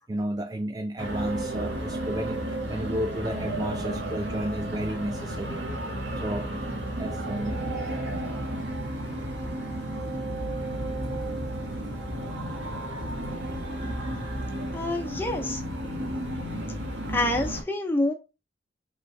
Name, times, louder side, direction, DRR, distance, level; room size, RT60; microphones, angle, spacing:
voice 1, 0.1-5.6 6.2-6.5 7.0-7.6 7.9-8.0 12.9-13.1 13.9-14.4, right 1 dB, 20° right, 0.3 m, -33 dB
sound 1, 1.0-17.6, right 1 dB, 85° right, 1.6 m, -32 dB
voice 2, 14.7-15.6 17.1-18.1, left 1 dB, 10° left, 1.0 m, -27 dB
5.4 x 3.8 x 2.3 m
head